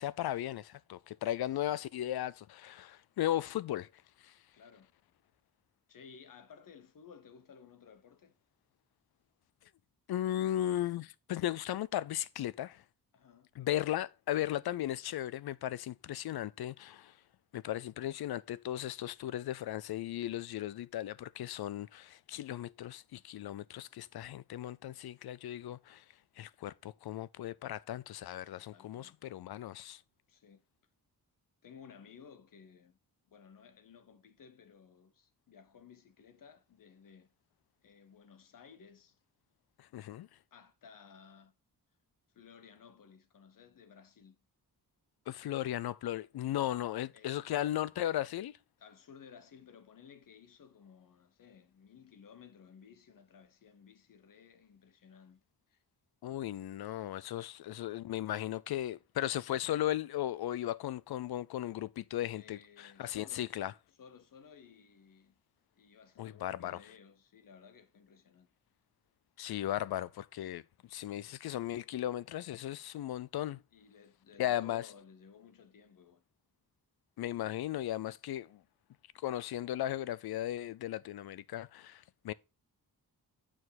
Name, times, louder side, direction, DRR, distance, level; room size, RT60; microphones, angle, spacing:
voice 1, 0.0-3.9 4.2-4.3 10.1-12.8 13.6-17.1 17.5-26.0 26.4-30.0 39.8-40.3 45.3-48.6 56.2-63.7 66.2-66.8 69.4-70.6 70.9-73.6 74.4-74.9 77.2-78.6 79.2-82.3, left 12 dB, 75° left, 0.5 m, -36 dB
voice 2, 4.5-4.9 5.9-8.4 13.1-13.5 24.9-25.0 28.7-29.2 30.3-30.6 31.6-33.0 33.2-37.3 37.8-39.2 40.5-41.5 42.3-44.4 47.1-47.6 48.8-55.8 62.3-63.5 64.0-65.4 65.8-68.5 73.7-76.2, left 6 dB, 60° left, 0.9 m, -57 dB
8.8 x 4.6 x 4.0 m
wide cardioid pair, 170°, 38 cm